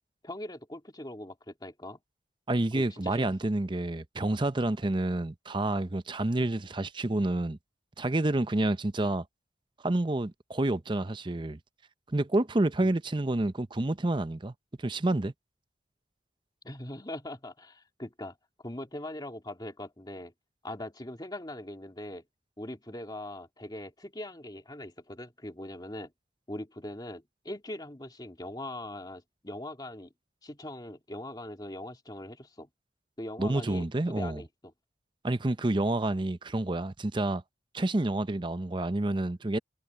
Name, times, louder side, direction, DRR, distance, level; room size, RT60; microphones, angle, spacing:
voice 1, 0.2-2.0 2.7-3.3 12.8-12.9 16.6-18.4 18.6-20.3 20.6-22.2 22.6-26.1 26.5-30.1 30.4-32.7 33.2-34.7, left 1 dB, 20° left, 2.6 m, -41 dB
voice 2, 2.5-7.6 8.0-9.2 9.8-11.6 12.1-14.5 14.8-15.3 33.4-34.4 35.2-37.4 37.7-39.6, right 2 dB, 25° right, 0.7 m, -29 dB
head